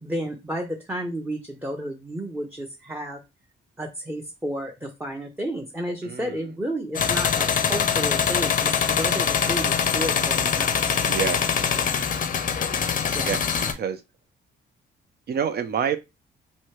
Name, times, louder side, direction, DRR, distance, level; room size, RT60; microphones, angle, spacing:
voice 1, 0.0-3.2 3.8-10.7 13.1-13.3, equal, 10° right, 0.7 m, -32 dB
voice 2, 6.0-6.5 11.0-11.4 13.2-14.0 15.3-16.0, right 8 dB, 55° right, 0.6 m, -28 dB
sound 1, 6.9-13.7, left 7 dB, 40° left, 0.6 m, -23 dB
3.1 x 2.8 x 3.1 m
cardioid pair, 90°, 20 cm